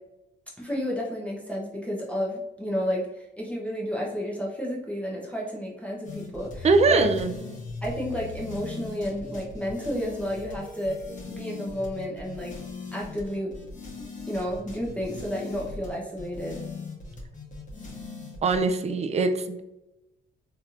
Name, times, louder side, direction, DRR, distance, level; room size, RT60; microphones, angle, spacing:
voice 1, 0.6-7.1 7.8-11.0 11.3-12.5 12.9-13.5 14.3-16.6, equal, 5° left, -4 dB, 0.8 m, -31 dB
sound 1, 6.0-18.6, left 3 dB, 40° left, 1.2 m, -39 dB
voice 2, 6.6-7.3 18.4-19.6, right 3 dB, 35° right, 8 dB, 0.4 m, -22 dB
3.3 x 2.8 x 2.4 m, 0.93 s
cardioid pair, 90°, 20 cm